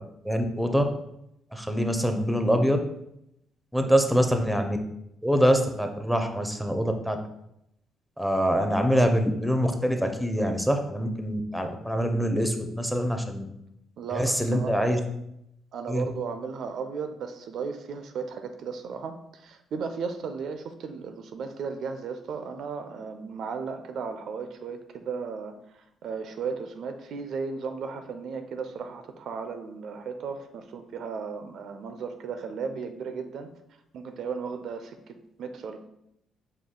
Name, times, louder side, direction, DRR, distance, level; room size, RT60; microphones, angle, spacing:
voice 1, 0.2-0.8 1.5-2.8 3.7-4.8 5.2-7.2 8.2-13.5 14.1-15.0 15.9-16.1, equal, ahead, 6 dB, 0.5 m, -24 dB
voice 2, 3.8-4.3 14.0-15.0 15.7-33.5 33.9-35.8, right 5 dB, 70° right, 8 dB, 0.4 m, -35 dB
4.9 x 2.3 x 3.7 m, 0.80 s
cardioid pair, 90°, 0 cm